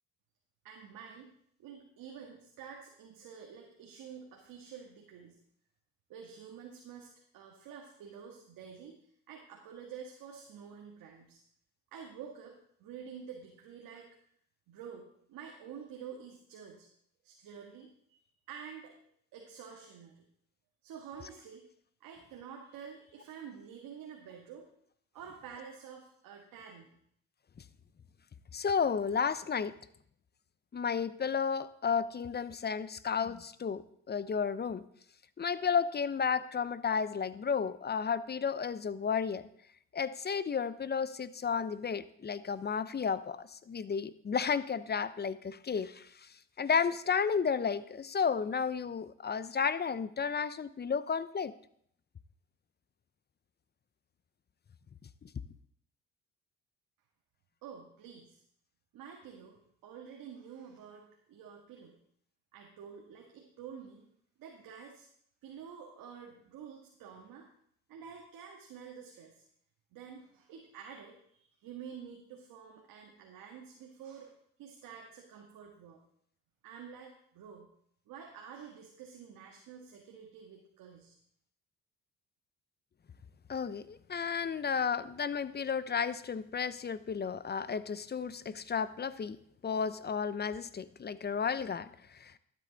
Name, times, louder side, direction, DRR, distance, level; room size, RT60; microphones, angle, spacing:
voice 1, 0.6-1.3 1.6-5.4 6.1-9.0 9.3-11.4 11.9-14.1 14.7-16.9 17.2-18.9 19.3-20.2 20.8-21.6 22.0-24.7 25.1-26.9 57.6-58.4 58.9-62.0 62.5-64.1 64.4-65.1 65.4-67.5 67.9-69.4 69.9-74.3 74.6-76.0 76.6-77.7 78.1-81.1, right 7 dB, 75° right, 0 dB, 1.7 m, -49 dB
voice 2, 28.5-29.7 30.7-34.8 35.4-39.4 39.9-46.3 46.6-51.5 55.2-55.3 83.5-89.4 89.6-92.4, left 6 dB, 30° left, 16 dB, 0.7 m, -32 dB
12.5 x 8.6 x 4.0 m, 0.67 s
supercardioid pair, 65°, 34 cm